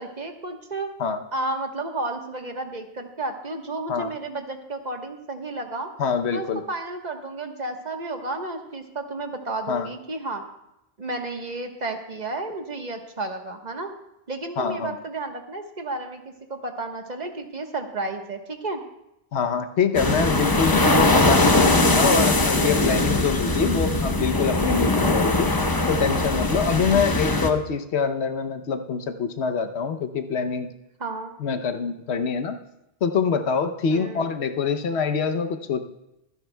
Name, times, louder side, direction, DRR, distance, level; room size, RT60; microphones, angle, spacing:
voice 1, 0.0-0.9 1.3-5.9 6.3-10.4 11.0-13.9 14.3-18.8 31.0-31.3 33.9-34.3, right 2 dB, 45° right, 4 dB, 1.3 m, -32 dB
voice 2, 6.0-6.6 9.7-9.9 14.6-15.0 19.3-25.5 25.9-30.7 31.4-32.6 33.0-35.8, left 5 dB, 90° left, 7 dB, 1.1 m, -25 dB
sound 1, 19.9-27.5, left 2 dB, 25° left, 0.8 m, -21 dB
24.5 x 10.5 x 2.2 m, 0.89 s
omnidirectional pair, 1.1 m